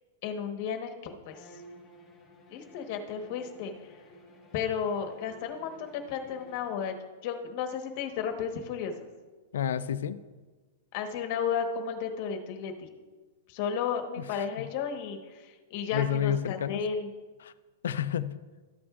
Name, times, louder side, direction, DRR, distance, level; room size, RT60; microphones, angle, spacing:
voice 1, 0.2-1.5 2.5-3.7 4.5-7.0 7.2-8.9 10.9-12.9 13.5-17.1, left 7 dB, 45° left, 5 dB, 1.1 m, -33 dB
Bowed string instrument, 1.3-7.1, equal, 15° left, 2.0 m, -53 dB
voice 2, 9.5-10.2 14.2-14.7 15.9-16.8 17.4-17.5 17.8-18.4, left 9 dB, 80° left, 14 dB, 0.4 m, -30 dB
13.0 x 8.7 x 2.4 m, 1.3 s
hypercardioid pair, 155°, 0 cm